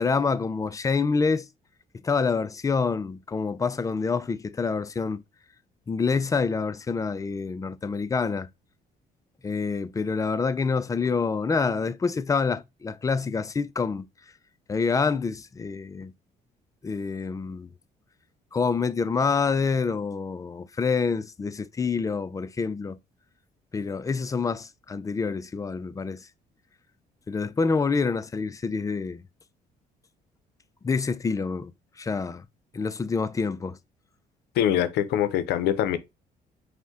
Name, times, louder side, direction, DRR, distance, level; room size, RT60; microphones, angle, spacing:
voice 1, 0.0-1.5 2.0-5.2 5.9-8.5 9.4-14.1 14.7-16.1 16.8-17.7 18.5-23.0 23.7-26.2 27.3-29.2 30.8-31.7 32.0-32.4 32.7-33.8, left 5 dB, 20° left, 0.3 m, -27 dB
voice 2, 34.6-36.0, left 10 dB, 85° left, 0.5 m, -23 dB
5.1 x 2.1 x 3.6 m
cardioid pair, 95°, 17 cm